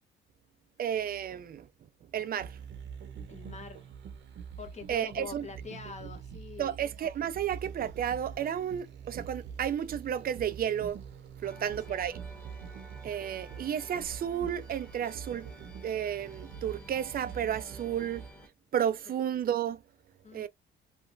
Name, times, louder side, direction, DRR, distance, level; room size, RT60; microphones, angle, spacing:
voice 1, 0.8-1.7 2.1-2.6 4.9-5.5 6.6-11.0 11.4-12.2 13.0-15.5 15.8-18.3 18.7-19.8 20.3-20.5, right 9 dB, 50° right, 0.4 m, -32 dB
sound 1, 2.4-18.3, right 7 dB, 65° right, 0.8 m, -45 dB
voice 2, 3.3-3.9 4.6-6.8 11.4-12.0 20.2-20.5, left 5 dB, 35° left, 1.1 m, -45 dB
sound 2, 11.4-18.5, right 1 dB, 10° left, 1.3 m, -52 dB
3.1 x 2.1 x 2.6 m
cardioid pair, 90°, 20 cm